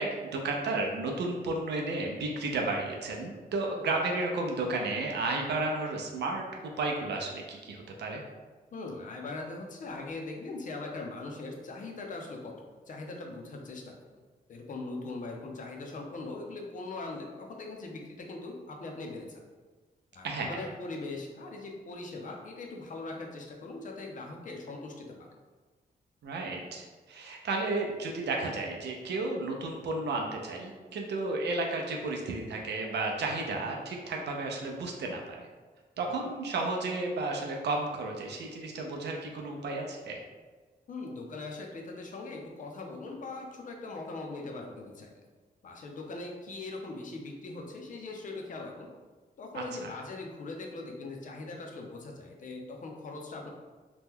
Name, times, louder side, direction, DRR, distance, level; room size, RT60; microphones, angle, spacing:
voice 1, 0.0-6.5 6.8-8.2 20.2-20.7 26.2-35.5 36.0-40.2 49.5-49.9, right 2 dB, 90° right, 0 dB, 0.5 m, -33 dB
voice 2, 8.7-12.5 12.9-14.2 14.5-19.4 20.1-25.3 36.0-36.1 40.9-45.1 45.6-48.9 49.4-53.5, left 3 dB, 50° left, 1 dB, 0.5 m, -41 dB
2.9 x 2.2 x 3.5 m, 1.4 s
wide cardioid pair, 155°, 17 cm